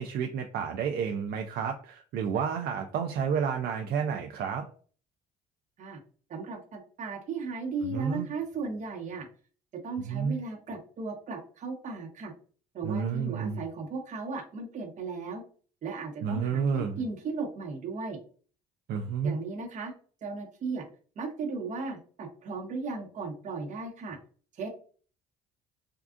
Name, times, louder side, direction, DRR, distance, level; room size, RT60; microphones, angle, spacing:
voice 1, 0.0-4.7 7.8-8.3 10.1-10.3 12.8-13.6 16.2-17.0 18.9-19.4, right 6 dB, 65° right, 4 dB, 0.4 m, -30 dB
voice 2, 6.3-9.3 9.8-12.3 12.7-15.4 15.8-18.2 19.2-19.9 20.2-20.8 21.2-24.2 24.5-24.7, right 4 dB, 45° right, 1 dB, 1.0 m, -36 dB
3.6 x 2.3 x 2.4 m, 0.42 s
cardioid pair, 110°, 17 cm